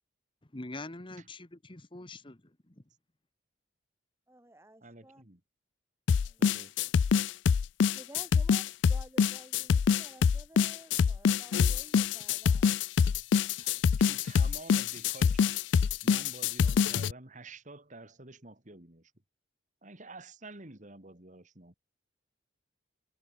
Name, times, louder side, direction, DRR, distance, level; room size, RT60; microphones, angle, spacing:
voice 1, 0.5-2.8, left 2 dB, 25° left, 1.3 m, -44 dB
voice 2, 4.3-5.2 6.2-6.6 7.9-12.8, right 1 dB, 15° right, 5.0 m, -54 dB
voice 3, 4.8-5.4 6.4-6.8 13.1-13.2 13.5-13.7 14.0-15.4 16.0-19.1 19.8-21.8, right 2 dB, 40° right, 2.8 m, -49 dB
sound 1, 6.1-17.1, left 6 dB, 70° left, 0.4 m, -25 dB
head